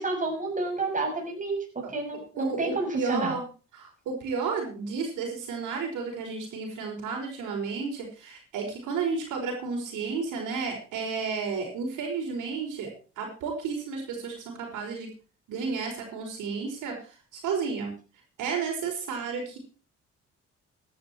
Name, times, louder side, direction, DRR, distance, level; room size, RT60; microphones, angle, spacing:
voice 1, 0.0-3.4, right 3 dB, 25° right, 1 dB, 6.3 m, -30 dB
voice 2, 2.4-3.4 3.7-12.9 13.2-15.1 15.5-17.0 17.3-17.9 18.4-19.6, right 5 dB, 85° right, 1 dB, 5.3 m, -32 dB
15.5 x 11.0 x 4.6 m, 0.35 s
cardioid pair, 90°, 30 cm